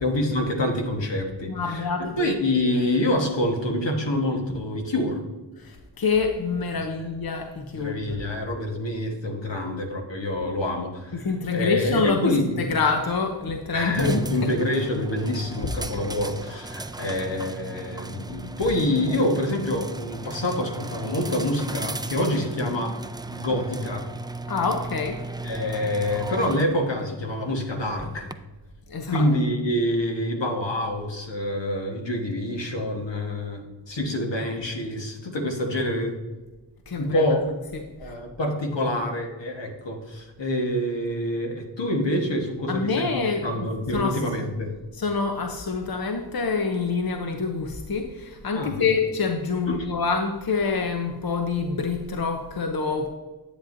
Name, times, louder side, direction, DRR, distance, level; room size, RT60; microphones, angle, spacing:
voice 1, 0.0-5.2 7.7-12.7 13.7-23.0 23.3-24.1 25.4-28.3 29.1-36.2 37.0-37.4 38.0-44.7 48.5-48.9, left 1 dB, 80° left, 1 dB, 1.4 m, -26 dB
voice 2, 1.5-2.3 5.6-8.2 11.1-14.5 24.5-25.2 28.9-29.3 36.9-37.3 38.0-38.1 42.7-44.2 45.0-53.1, left 4 dB, 55° left, 4 dB, 0.8 m, -26 dB
sound 1, 13.9-28.3, right 2 dB, 10° right, 0.3 m, -36 dB
10.0 x 7.8 x 2.6 m, 1.2 s
wide cardioid pair, 55°, 43 cm